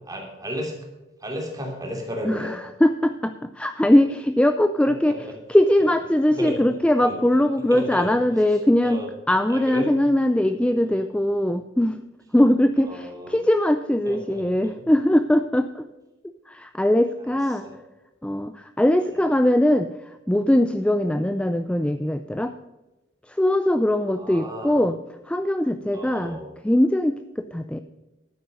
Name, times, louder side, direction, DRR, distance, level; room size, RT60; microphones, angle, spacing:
voice 1, 0.1-0.8 1.2-2.5 4.8-5.2 6.4-6.6 7.0-7.2 7.7-8.1 8.8-9.1 9.5-9.9 12.8-13.4 14.0-14.8 17.2-17.4 17.6-17.7 24.1-24.8 25.9-26.5, equal, 20° right, 1 dB, 2.9 m, -33 dB
voice 2, 2.2-5.2 5.5-12.0 12.3-15.8 16.5-17.6 18.2-22.5 23.3-25.0 25.3-26.4 26.6-27.8, left 1 dB, 5° left, 9 dB, 0.4 m, -21 dB
11.5 x 9.5 x 5.3 m, 1.1 s
head